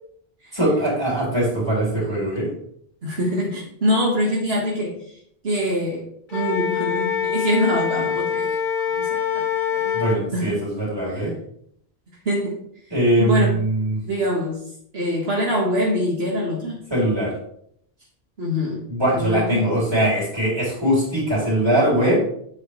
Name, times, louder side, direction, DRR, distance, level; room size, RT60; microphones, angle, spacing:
voice 1, 0.5-2.5 9.9-11.3 12.9-14.0 16.9-17.3 18.9-22.2, right 1 dB, 25° right, -5 dB, 3.9 m, -21 dB
voice 2, 3.0-4.9 5.4-6.0 6.3-8.6 8.9-9.4 9.7-10.0 10.3-10.5 11.1-11.2 12.3-12.6 13.2-13.5 14.0-14.6 14.9-16.8 18.4-18.8 19.1-19.8, equal, 70° right, -3 dB, 1.9 m, -24 dB
Wind instrument woodwind instrument, 6.3-10.2, left 7 dB, 50° left, 1.1 m, -24 dB
8.5 x 7.9 x 3.2 m, 0.67 s
omnidirectional pair, 1.1 m